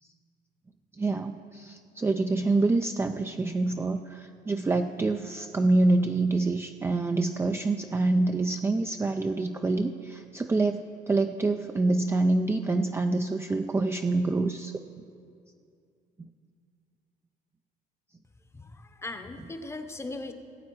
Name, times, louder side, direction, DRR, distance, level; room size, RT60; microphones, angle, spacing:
voice 1, 1.0-15.0 16.2-16.3, right 2 dB, 15° right, 6 dB, 0.3 m, -26 dB
voice 2, 18.5-20.3, left 2 dB, 15° left, 8 dB, 0.8 m, -38 dB
17.0 x 8.4 x 4.6 m, 2.4 s
cardioid pair, 110°, 17 cm